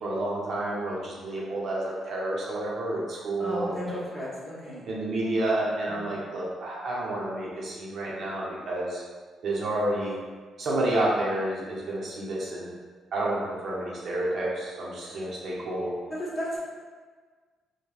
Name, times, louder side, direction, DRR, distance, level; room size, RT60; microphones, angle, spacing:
voice 1, 0.0-4.0 4.9-9.0 9.4-10.2 10.6-12.7 13.1-15.9, right 1 dB, 60° right, -5 dB, 0.7 m, -30 dB
voice 2, 3.4-4.9 5.9-6.1 15.0-15.3 16.1-16.6, equal, 25° left, -7 dB, 1.1 m, -34 dB
3.2 x 2.1 x 2.4 m, 1.5 s
cardioid pair, 90°, 0 cm